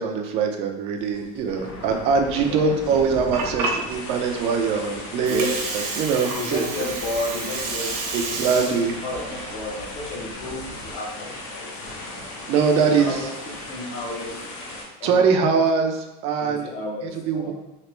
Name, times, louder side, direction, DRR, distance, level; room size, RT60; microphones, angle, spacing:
voice 1, 0.0-5.5 6.0-6.6 8.1-9.0 12.5-13.2 15.0-16.0 16.2-16.6 17.3-17.5, right 5 dB, 30° right, 4 dB, 0.4 m, -22 dB
sound 1, 1.0-14.8, left 2 dB, 60° left, 0.9 m, -37 dB
voice 2, 2.4-2.8 5.3-5.6 6.4-8.8 9.0-11.7 12.5-14.5 15.0-15.6 16.4-17.5, left 2 dB, 30° left, -1 dB, 0.7 m, -32 dB
Water, 3.1-10.9, right 4 dB, 70° right, 0.8 m, -31 dB
3.3 x 2.9 x 3.0 m, 1.0 s
cardioid pair, 175°, 20 cm